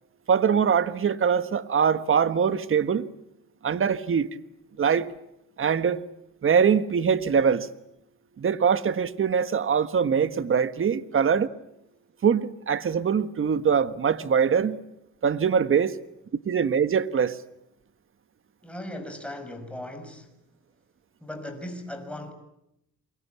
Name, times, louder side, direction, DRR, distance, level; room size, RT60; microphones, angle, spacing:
voice 1, 0.3-3.1 3.6-4.3 4.8-5.1 5.6-6.0 6.4-7.7 8.4-11.5 12.2-14.8 15.2-16.0 16.4-17.4, right 7 dB, 45° right, 1.5 m, -23 dB
voice 2, 18.6-20.3 21.2-22.3, left 1 dB, 5° left, 5.8 m, -37 dB
28.5 x 23.0 x 8.5 m
cardioid pair, 90°, 30 cm